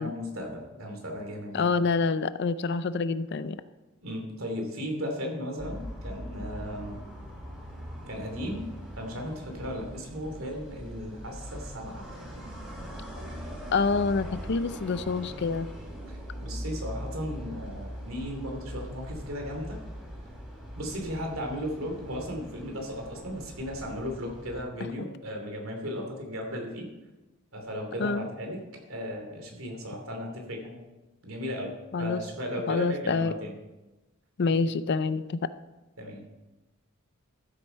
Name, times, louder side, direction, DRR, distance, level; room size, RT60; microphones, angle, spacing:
voice 1, 0.0-1.7 4.0-7.0 8.1-8.7 9.0-12.0 16.1-19.8 20.8-26.9 27.5-28.6 28.9-30.9 31.2-33.5 34.6-34.7 36.0-36.3, equal, 80° right, 2 dB, 2.9 m, -36 dB
voice 2, 1.5-3.6 13.7-15.7 28.0-28.3 31.9-32.2 32.7-33.3 34.4-35.4, left 4 dB, 55° left, 14 dB, 0.5 m, -27 dB
sound 1, 5.6-24.6, equal, 5° right, 3.6 m, -41 dB
14.0 x 8.1 x 4.4 m, 1.1 s
head